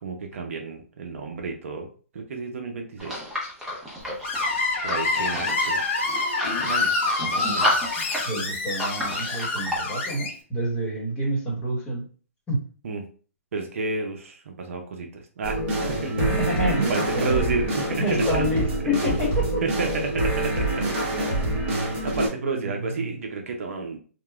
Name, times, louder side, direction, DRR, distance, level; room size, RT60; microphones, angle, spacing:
voice 1, 0.0-1.9 2.1-3.2 4.8-5.8 6.6-6.9 7.2-7.7 12.8-13.1 13.5-16.2 16.9-18.0 19.6-20.9 21.7-24.0, right 4 dB, 60° right, 3 dB, 0.6 m, -31 dB
sound 1, 3.0-9.8, equal, 5° right, 0.6 m, -31 dB
Screech, 4.2-10.3, left 3 dB, 45° left, 0.8 m, -27 dB
voice 2, 8.2-12.0 12.5-12.6 16.2-17.4 18.0-19.6 21.7-21.9 22.5-23.1, equal, 15° left, -4 dB, 1.1 m, -28 dB
sound 2, 15.4-22.3, right 1 dB, 40° right, 1.1 m, -26 dB
2.9 x 2.1 x 2.3 m, 0.40 s
hypercardioid pair, 150°, 8 cm